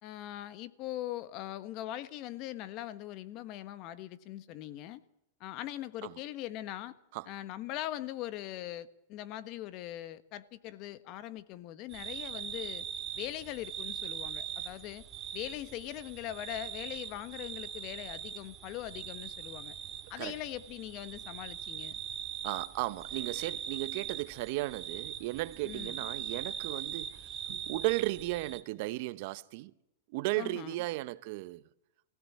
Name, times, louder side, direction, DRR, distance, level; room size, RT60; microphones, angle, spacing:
voice 1, 0.0-5.0 5.4-7.0 7.2-12.9 13.1-15.0 15.3-19.7 20.1-22.0 25.6-26.0 30.4-30.8, left 13 dB, 45° left, 1.4 m, -41 dB
sound 1, 11.9-28.6, right 9 dB, 30° right, 2.4 m, -41 dB
voice 2, 22.4-29.7 30.1-31.6, right 19 dB, 55° right, 0.9 m, -35 dB
21.5 x 17.0 x 7.7 m
hypercardioid pair, 125°, 0 cm